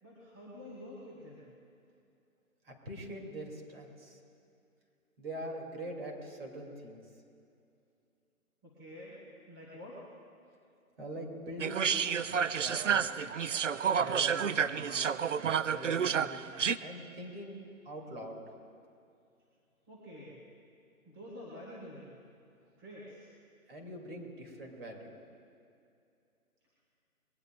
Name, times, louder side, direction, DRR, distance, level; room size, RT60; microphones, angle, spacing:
voice 1, 0.0-1.5 8.6-9.2 9.5-10.0 19.9-20.4 21.0-22.1 22.8-23.3, left 1 dB, 15° right, -7 dB, 1.9 m, -48 dB
voice 2, 2.7-4.2 5.2-7.0 11.0-12.0 12.5-13.0 13.9-15.1 15.6-16.4 16.8-17.6 17.8-18.4 23.7-25.1, right 1 dB, 40° right, 0 dB, 2.9 m, -43 dB
sound 1, 11.6-16.8, right 7 dB, 60° right, 0.5 m, -30 dB
22.0 x 19.5 x 2.5 m, 2.5 s
hypercardioid pair, 170°, 44 cm